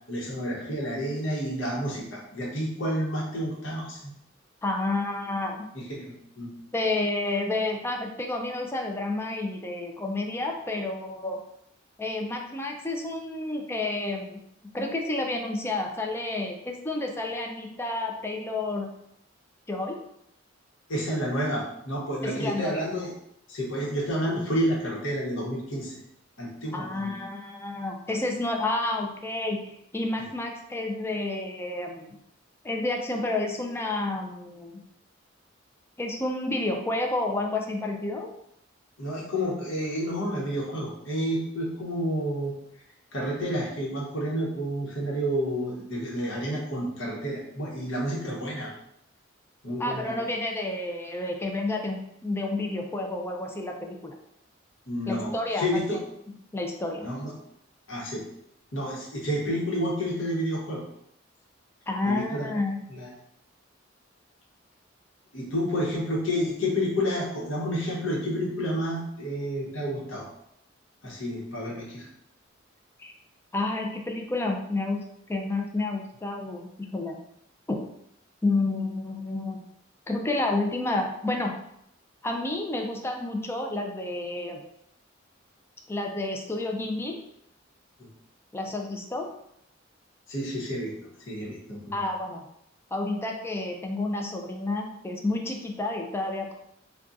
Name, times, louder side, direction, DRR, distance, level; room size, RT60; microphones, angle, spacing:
voice 1, 0.1-4.1 5.7-6.5 20.9-23.1 23.5-25.9 26.4-27.1 39.0-42.5 43.1-48.7 49.6-50.2 54.9-56.0 57.0-57.3 57.9-58.2 58.7-60.8 62.0-62.6 62.9-63.1 65.3-70.3 71.0-72.0 90.3-90.9 91.3-92.0, equal, 75° left, -4 dB, 1.0 m, -30 dB
voice 2, 4.6-5.7 6.7-11.4 12.0-14.4 14.7-18.9 19.7-20.0 22.2-22.8 26.7-32.2 32.6-34.8 36.0-38.3 49.8-54.2 55.1-56.0 56.5-57.1 61.9-62.8 73.0-73.1 73.5-75.0 75.3-77.2 77.7-77.8 78.4-79.6 80.1-81.6 82.2-84.6 85.9-87.2 88.5-89.3 91.9-92.5 92.9-96.5, left 2 dB, 10° left, 2 dB, 0.3 m, -30 dB
2.4 x 2.3 x 3.9 m, 0.76 s
head